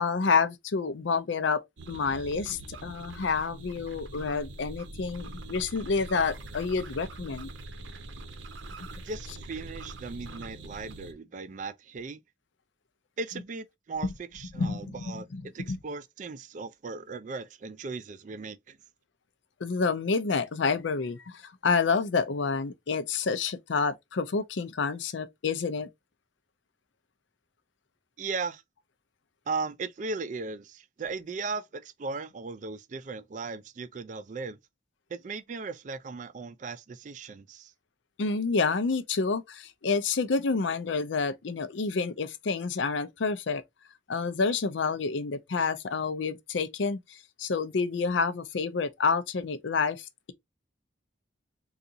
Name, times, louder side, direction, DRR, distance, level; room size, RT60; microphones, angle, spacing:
voice 1, 0.0-7.5 14.6-15.4 15.7-15.8 19.6-25.9 38.2-43.6 44.1-50.3, left 4 dB, 75° left, 0.5 m, -29 dB
sound 1, 1.8-11.1, right 2 dB, 80° right, 0.7 m, -43 dB
voice 2, 9.0-12.2 13.2-18.8 28.2-28.6 29.5-34.6 35.1-37.7, right 4 dB, 40° right, 0.3 m, -37 dB
3.8 x 2.4 x 2.6 m
head